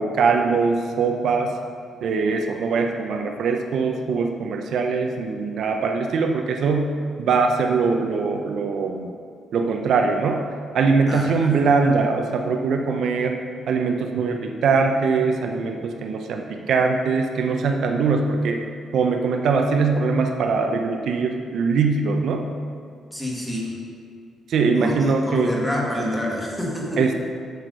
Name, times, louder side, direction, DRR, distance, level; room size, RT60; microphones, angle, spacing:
voice 1, 0.0-1.5 2.0-9.1 9.5-10.4 10.7-13.4 13.7-18.6 18.9-22.5 24.5-25.5 27.0-27.1, right 4 dB, 65° right, 3 dB, 0.6 m, -22 dB
voice 2, 11.1-11.7 23.1-23.7 24.7-27.0, left 1 dB, ahead, -3 dB, 1.7 m, -27 dB
8.0 x 4.7 x 6.6 m, 2.3 s
cardioid pair, 130°, 0 cm